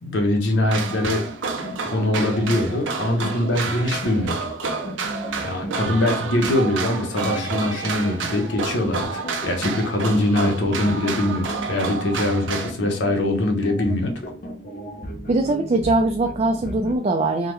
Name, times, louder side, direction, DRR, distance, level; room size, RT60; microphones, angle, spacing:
voice 1, 0.0-1.3 1.8-4.4 5.4-14.1, left 1 dB, 80° left, 2 dB, 0.8 m, -23 dB
sound 1, 0.7-12.7, right 4 dB, 90° right, 0.5 m, -30 dB
sound 2, 0.8-17.0, equal, 50° left, 0.6 m, -34 dB
voice 2, 15.3-17.5, right 2 dB, 35° right, 3 dB, 0.3 m, -21 dB
3.6 x 2.0 x 3.1 m, 0.38 s
head